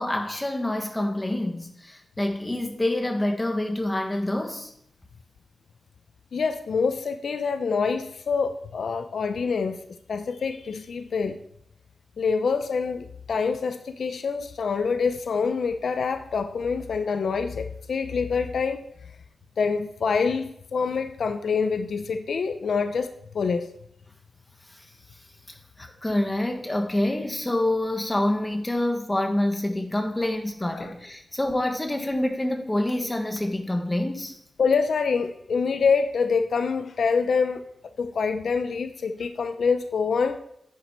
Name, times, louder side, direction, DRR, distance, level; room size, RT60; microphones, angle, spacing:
voice 1, 0.0-4.7 24.7-24.8 25.5-34.3, left 1 dB, 15° left, 4 dB, 1.6 m, -27 dB
voice 2, 6.3-9.8 10.1-11.4 12.2-18.8 19.6-23.1 23.3-23.7 30.7-30.9 34.6-37.6 38.0-40.4, left 5 dB, 85° left, 8 dB, 0.7 m, -26 dB
10.5 x 9.5 x 4.4 m, 0.73 s
wide cardioid pair, 125°, 0 cm